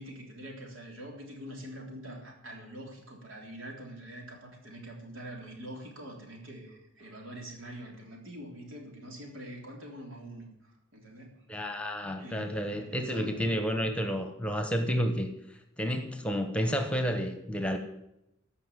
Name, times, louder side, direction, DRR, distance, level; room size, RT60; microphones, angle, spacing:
voice 1, 0.0-10.5 10.9-11.4 12.2-13.3, right 1 dB, 80° right, 1 dB, 3.4 m, -44 dB
voice 2, 11.5-15.3 15.8-17.8, equal, 5° left, 6 dB, 1.1 m, -30 dB
15.0 x 5.7 x 7.5 m, 0.85 s
head